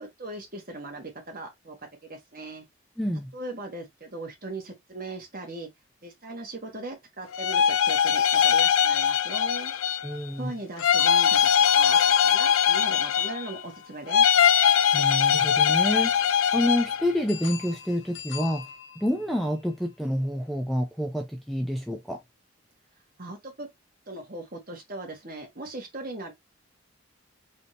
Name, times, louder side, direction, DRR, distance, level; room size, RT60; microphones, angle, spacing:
voice 1, 0.0-1.8 2.0-2.7 3.3-5.7 6.0-9.7 10.4-11.5 11.8-14.3 23.2-23.7 24.1-26.3, right 2 dB, 45° right, 1.7 m, -39 dB
voice 2, 3.0-3.3 10.0-10.5 14.9-16.1 16.5-18.7 19.0-22.2, equal, ahead, 0.5 m, -28 dB
sound 1, 7.3-10.2 10.8-13.6 14.1-17.1, left 8 dB, 85° left, 0.3 m, -21 dB
sound 2, 10.8-14.9 17.3-19.6, left 9 dB, 65° left, 0.8 m, -41 dB
4.1 x 2.8 x 3.3 m
head